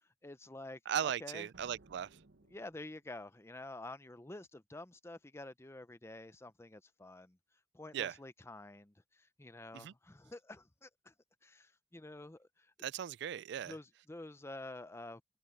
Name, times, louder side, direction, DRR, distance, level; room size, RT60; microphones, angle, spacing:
voice 1, 0.2-1.5 2.5-7.4 7.7-11.1 11.4-12.7 13.7-15.2, left 2 dB, 15° left, 0.7 m, -49 dB
voice 2, 0.9-2.2 7.9-8.2 9.7-9.9 12.8-13.8, right 9 dB, 65° right, 0.3 m, -38 dB
sound 1, 1.5-3.3, right 2 dB, 90° right, 1.3 m, -63 dB
head